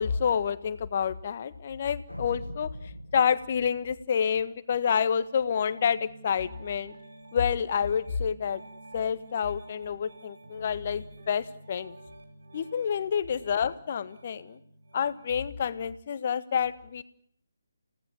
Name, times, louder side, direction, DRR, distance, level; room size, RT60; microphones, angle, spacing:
voice 1, 0.0-2.7 3.1-6.9 7.3-8.6 8.9-11.9 12.5-14.6 14.9-17.0, left 7 dB, 35° left, 14 dB, 1.6 m, -28 dB
sound 1, 2.1-4.6, equal, 90° left, 2.1 m, -42 dB
Piano, 5.7-15.4, right 2 dB, 55° right, 5.7 m, -50 dB
30.0 x 18.0 x 9.9 m, 0.67 s
figure-of-eight pair, 145°, 0 cm